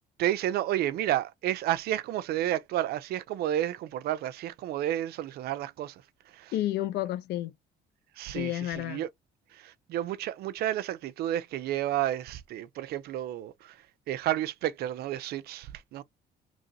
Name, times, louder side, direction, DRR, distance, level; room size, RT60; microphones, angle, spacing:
voice 1, 0.2-5.9 6.3-6.5 8.2-9.1 9.5-13.8 14.1-16.0, right 12 dB, 70° right, 0.5 m, -31 dB
voice 2, 6.5-7.5 8.3-9.0, left 14 dB, 75° left, 0.6 m, -30 dB
3.0 x 2.7 x 3.9 m
cardioid pair, 110°, 17 cm